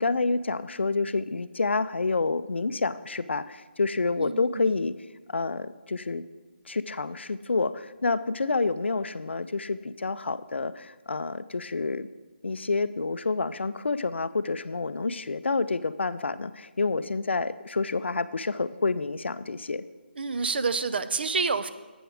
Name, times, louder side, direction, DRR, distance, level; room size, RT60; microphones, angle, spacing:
voice 1, 0.0-4.9 5.3-6.2 6.7-12.1 12.4-19.8, left 3 dB, 90° left, 14 dB, 0.4 m, -28 dB
voice 2, 4.2-4.8 20.2-21.7, right 4 dB, 65° right, 13 dB, 0.5 m, -28 dB
7.8 x 4.7 x 6.2 m, 1.4 s
figure-of-eight pair, 160°, 6 cm